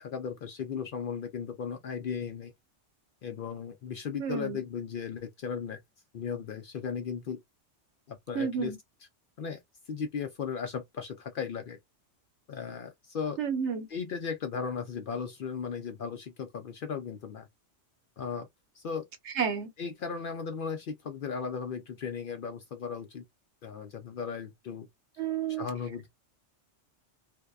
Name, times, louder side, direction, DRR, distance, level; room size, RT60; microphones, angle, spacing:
voice 1, 0.0-2.5 3.2-5.8 6.1-7.4 8.1-8.8 9.4-9.6 9.9-11.8 12.5-13.4 13.9-17.5 18.2-18.5 18.7-19.0 19.8-23.2 23.6-24.9 25.6-26.1, left 6 dB, 60° left, 0.6 m, -36 dB
voice 2, 4.2-4.6 8.3-8.8 13.4-13.9 19.3-19.7 25.2-25.7, right 7 dB, 70° right, 1.1 m, -30 dB
2.6 x 2.1 x 2.2 m
omnidirectional pair, 1.2 m